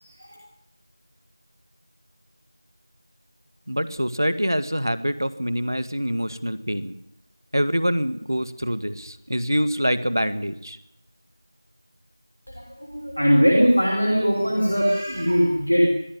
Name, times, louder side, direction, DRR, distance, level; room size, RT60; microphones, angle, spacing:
voice 1, 3.7-7.0 7.5-10.8, equal, 60° right, 13 dB, 1.7 m, -25 dB
voice 2, 12.9-15.9, equal, 5° right, -2 dB, 0.9 m, -19 dB
21.0 x 13.0 x 10.0 m, 0.82 s
figure-of-eight pair, 180°, 2 cm